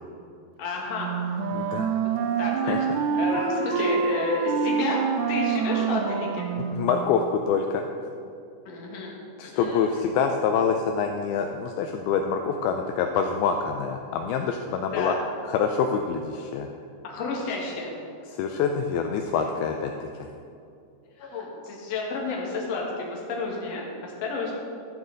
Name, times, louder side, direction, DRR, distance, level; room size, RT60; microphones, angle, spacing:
voice 1, 0.6-1.1 2.4-2.8 3.2-5.0 5.3-6.5 8.7-9.1 9.4-9.9 14.9-15.2 17.0-17.9 21.2-24.5, left 3 dB, 50° left, -2 dB, 2.1 m, -30 dB
Wind instrument woodwind instrument, 0.9-7.0, right 6 dB, 80° right, 2.4 m, -26 dB
voice 2, 1.5-1.9 2.7-2.8 6.6-7.8 9.4-15.1 15.4-16.7 18.3-20.3, left 6 dB, 85° left, 4 dB, 2.2 m, -26 dB
12.5 x 8.9 x 4.0 m, 2.5 s
omnidirectional pair, 4.9 m